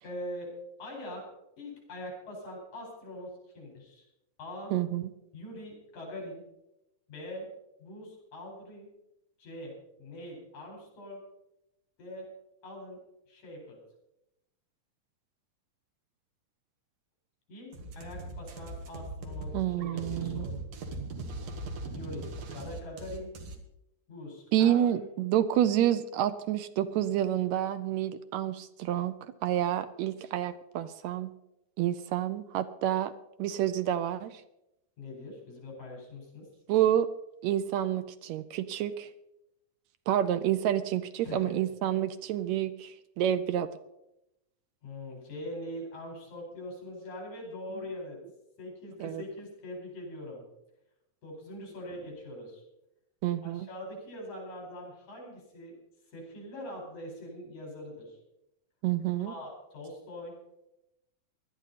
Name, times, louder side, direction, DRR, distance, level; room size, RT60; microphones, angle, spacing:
voice 1, 0.0-0.5 0.8-1.3 1.6-4.1 4.4-4.8 5.3-6.4 7.1-7.5 7.8-8.9 9.4-11.2 12.0-12.3 12.6-13.0 13.3-13.8 17.5-20.6 21.9-23.3 24.1-25.1 35.0-36.5 41.2-41.6 44.8-48.2 48.6-50.4 51.2-52.6 53.4-55.8 56.1-58.2 59.2-60.3, left 1 dB, 80° left, 0 dB, 6.2 m, -43 dB
voice 2, 4.7-5.1 19.5-20.5 24.5-29.1 29.4-31.3 31.8-33.1 33.4-34.3 36.7-37.1 37.4-39.1 40.1-43.7 49.0-49.2 53.2-53.7 58.8-59.3, right 11 dB, 80° right, 11 dB, 1.8 m, -28 dB
sound 1, 17.7-23.6, right 2 dB, 60° right, 2.7 m, -39 dB
18.5 x 12.0 x 4.1 m, 0.87 s
omnidirectional pair, 3.4 m